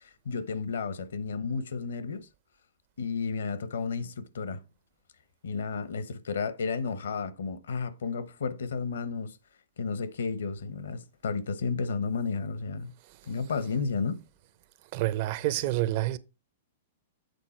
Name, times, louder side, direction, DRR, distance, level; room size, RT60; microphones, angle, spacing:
voice 1, 0.0-2.3 3.0-4.6 5.4-9.4 9.8-12.9 13.2-14.2, left 5 dB, 80° left, 0.9 m, -32 dB
voice 2, 14.9-16.2, right 15 dB, 50° right, 0.6 m, -28 dB
8.3 x 4.0 x 4.4 m
hypercardioid pair, 120°, 0 cm